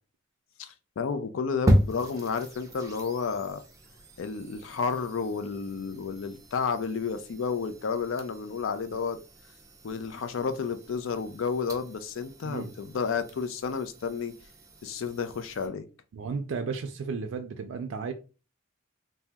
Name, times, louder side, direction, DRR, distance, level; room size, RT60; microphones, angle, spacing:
voice 1, 0.6-3.6 4.2-9.2 9.8-14.3 14.8-15.9, left 5 dB, 75° left, 0.4 m, -31 dB
sound 1, 1.7-15.7, equal, 15° right, 0.5 m, -35 dB
voice 2, 16.1-18.1, right 5 dB, 75° right, 0.4 m, -34 dB
2.8 x 2.0 x 3.4 m
head